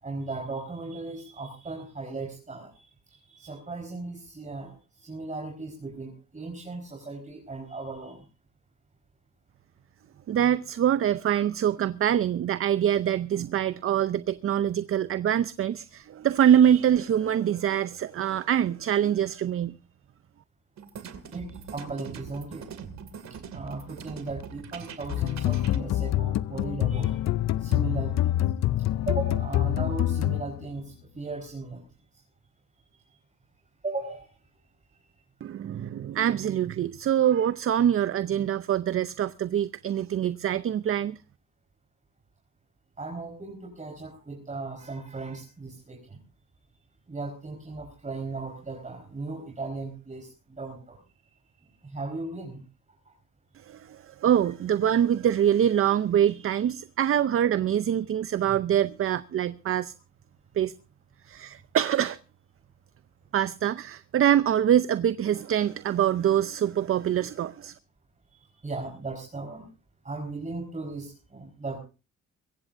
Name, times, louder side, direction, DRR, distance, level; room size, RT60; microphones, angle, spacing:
voice 1, 0.0-8.3 21.3-22.7 23.3-27.3 27.6-28.4 29.1-31.8 32.9-33.2 33.8-34.4 34.9-35.1 43.0-46.2 47.1-52.6 53.0-53.1 54.9-55.0 57.1-57.3 68.3-69.7 70.0-71.8, right 3 dB, 25° right, 4.6 m, -37 dB
voice 2, 10.3-19.8 35.4-41.2 53.7-59.9 60.6-60.7 61.3-62.2 63.3-67.7, right 10 dB, 45° right, 0.6 m, -24 dB
sound 1, 20.8-25.8, right 7 dB, 65° right, 2.4 m, -42 dB
sound 2, 25.1-30.8, left 13 dB, 60° left, 0.6 m, -26 dB
23.0 x 15.5 x 2.6 m
cardioid pair, 90°, 30 cm